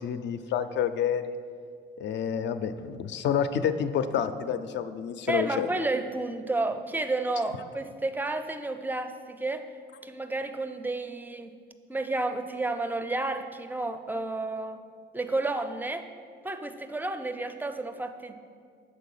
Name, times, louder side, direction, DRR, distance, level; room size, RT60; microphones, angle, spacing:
voice 1, 0.0-1.4 2.0-5.7, left 8 dB, 65° left, 10 dB, 0.4 m, -29 dB
voice 2, 5.3-9.7 10.0-11.5 11.9-14.8 15.1-16.1 16.4-18.3, right 2 dB, 10° right, 8 dB, 0.4 m, -31 dB
6.6 x 4.1 x 5.4 m, 2.1 s
cardioid pair, 90°, 20 cm